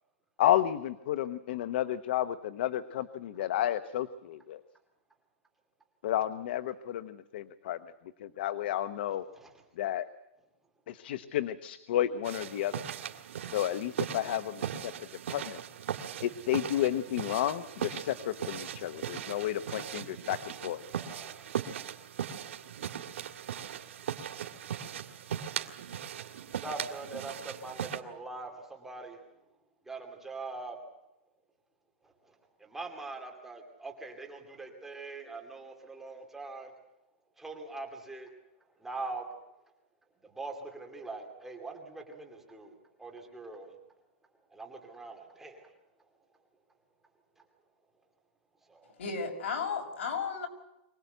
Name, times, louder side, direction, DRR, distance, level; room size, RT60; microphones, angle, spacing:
voice 1, 0.4-4.6 6.0-7.8 8.2-9.2 9.8-10.1 10.9-12.8 13.5-14.9 15.3-15.6 16.2-20.8, left 12 dB, 50° left, 13 dB, 0.9 m, -31 dB
sound 1, 12.2-28.0, right 9 dB, 80° right, 2.3 m, -39 dB
voice 2, 20.9-21.5 26.6-29.2 29.9-30.8 32.2-36.7 37.4-38.3 38.8-39.3 40.2-43.8 44.5-45.7 48.7-48.9, right 3 dB, 5° right, 1 dB, 2.6 m, -43 dB
voice 3, 49.0-50.5, left 5 dB, 75° left, 4 dB, 5.8 m, -34 dB
24.5 x 18.5 x 8.0 m, 0.91 s
supercardioid pair, 175°, 7 cm